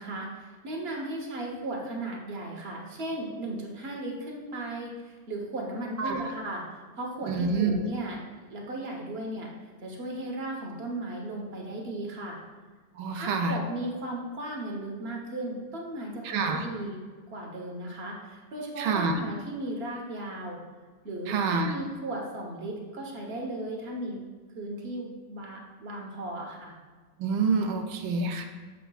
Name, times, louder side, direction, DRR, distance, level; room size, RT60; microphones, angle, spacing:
voice 1, 0.0-9.5 9.8-12.4 13.1-17.0 17.3-20.6 21.0-24.2 24.5-26.7, right 1 dB, 45° right, 0 dB, 0.9 m, -36 dB
voice 2, 6.0-6.3 7.3-7.8 12.9-13.6 16.2-16.7 18.8-19.2 21.3-21.7 27.2-28.4, right 4 dB, 80° right, 4 dB, 1.4 m, -27 dB
7.3 x 6.7 x 2.3 m, 1.4 s
omnidirectional pair, 2.2 m